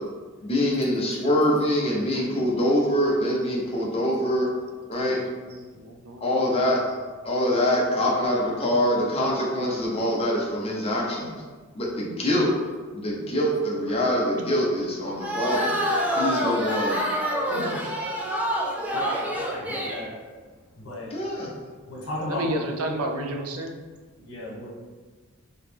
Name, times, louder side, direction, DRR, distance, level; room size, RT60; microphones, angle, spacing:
voice 1, 0.4-4.5 4.9-5.2 6.2-6.8 7.3-11.3 11.8-12.5 12.9-15.8 16.2-17.0 17.5-17.8 21.1-21.5, equal, 25° left, -4 dB, 0.7 m, -24 dB
voice 2, 5.0-7.0 17.5-17.8 22.3-23.8, right 1 dB, 75° right, 3 dB, 0.5 m, -33 dB
sound 1, 15.2-20.1, equal, 5° right, 0.4 m, -27 dB
voice 3, 18.9-20.2 20.8-21.1 21.9-22.5 23.0-23.1 24.3-24.7, left 1 dB, 65° left, -5 dB, 1.3 m, -35 dB
3.2 x 2.9 x 3.4 m, 1.4 s
head